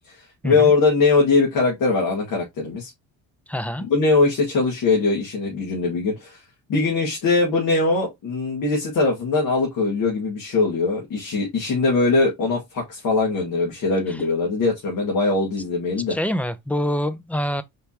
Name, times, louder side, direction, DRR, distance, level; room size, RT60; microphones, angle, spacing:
voice 1, 0.1-2.9 3.9-6.4 6.7-16.2, left 3 dB, 60° left, 2.1 m, -21 dB
voice 2, 3.5-3.9 16.1-17.6, equal, 5° left, 0.5 m, -25 dB
5.0 x 3.5 x 2.9 m
supercardioid pair, 90°, 36 cm